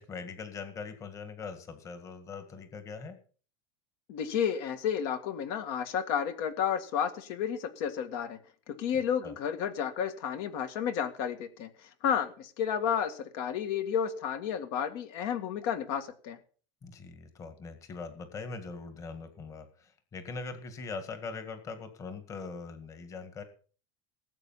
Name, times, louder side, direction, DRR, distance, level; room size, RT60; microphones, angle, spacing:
voice 1, 0.0-3.2 9.2-9.3 16.8-23.4, left 4 dB, 20° left, 8 dB, 1.9 m, -41 dB
voice 2, 4.1-8.4 8.7-16.4, left 8 dB, 55° left, 9 dB, 1.9 m, -31 dB
18.5 x 8.3 x 5.7 m, 0.41 s
supercardioid pair, 170°, 15 cm